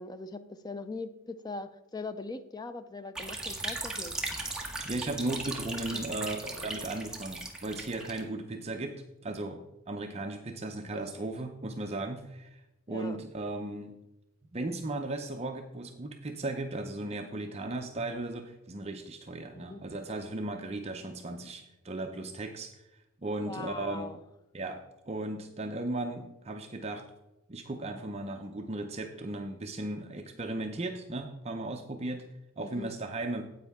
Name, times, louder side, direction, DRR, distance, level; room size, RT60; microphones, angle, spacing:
voice 1, 0.0-4.2 5.9-6.7 10.9-11.3 12.9-13.2 19.5-19.8 23.5-24.2 32.6-32.9, left 3 dB, 20° left, 10 dB, 0.4 m, -41 dB
sound 1, 3.2-8.2, right 2 dB, 5° right, 1.1 m, -37 dB
voice 2, 4.8-9.0 9.2-12.6 12.9-13.9 14.5-22.9 23.2-24.1 24.5-27.0 27.5-32.2 32.6-33.4, right 2 dB, 30° right, 4 dB, 0.6 m, -36 dB
9.6 x 8.3 x 3.5 m, 0.91 s
head